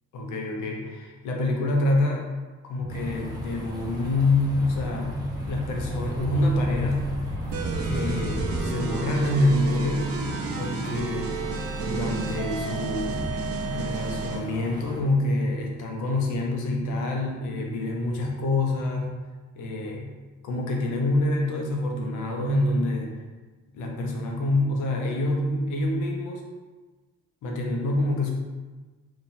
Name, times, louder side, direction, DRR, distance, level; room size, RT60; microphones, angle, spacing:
voice 1, 0.1-2.3 2.6-7.1 7.8-10.1 10.6-11.3 11.8-13.4 13.6-19.1 19.5-20.1 20.4-23.1 23.7-26.5 27.4-28.3, left 2 dB, 85° left, 1 dB, 0.9 m, -26 dB
sound 1, 2.8-8.7, equal, 55° left, 0.9 m, -35 dB
sound 2, 2.9-15.0, equal, 10° right, 1.0 m, -38 dB
sound 3, 7.5-14.4, right 4 dB, 50° right, 0.7 m, -32 dB
4.1 x 2.5 x 4.2 m, 1.3 s
cardioid pair, 90°, 30 cm